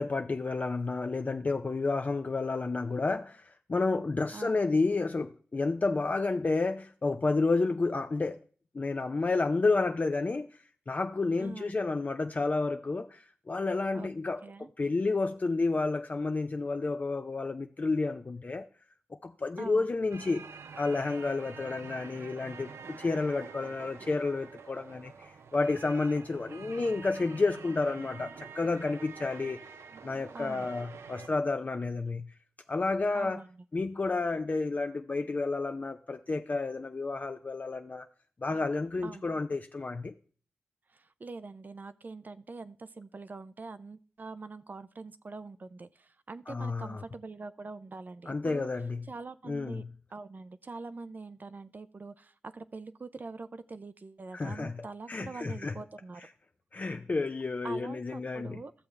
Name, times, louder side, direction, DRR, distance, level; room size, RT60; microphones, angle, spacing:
voice 1, 0.0-8.4 8.7-10.6 10.9-14.4 14.8-18.7 19.2-20.5 20.8-29.6 30.0-32.3 32.7-33.4 33.7-38.1 38.4-40.1 46.5-47.0 48.3-49.0 49.5-49.9 54.3-54.8 55.1-55.7 56.7-58.6, left 3 dB, 40° left, 0.5 m, -30 dB
voice 2, 11.4-11.8 13.9-14.1 14.4-14.7 19.6-19.8 30.3-30.7 33.1-33.5 39.0-39.3 40.9-48.7 49.1-49.8 50.1-56.3 57.6-58.7, right 3 dB, 45° right, 0.4 m, -44 dB
sound 1, 20.1-31.3, right 5 dB, 85° right, 0.6 m, -47 dB
12.5 x 6.9 x 3.3 m
cardioid pair, 70°, 4 cm